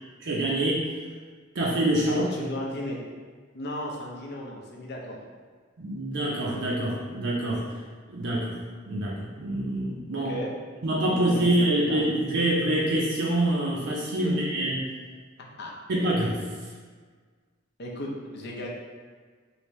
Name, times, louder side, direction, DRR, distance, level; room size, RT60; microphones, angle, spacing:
voice 1, 0.2-0.8 1.6-2.2 5.8-7.6 8.1-8.5 8.9-10.3 10.8-14.7 15.9-16.4, right 1 dB, 60° right, -5 dB, 0.5 m, -25 dB
voice 2, 2.1-3.0 3.5-5.2 10.1-10.5 11.1-12.0 14.2-14.3 15.4-15.7 17.8-18.7, left 1 dB, 55° left, -1 dB, 0.6 m, -35 dB
3.2 x 2.6 x 3.0 m, 1.5 s
head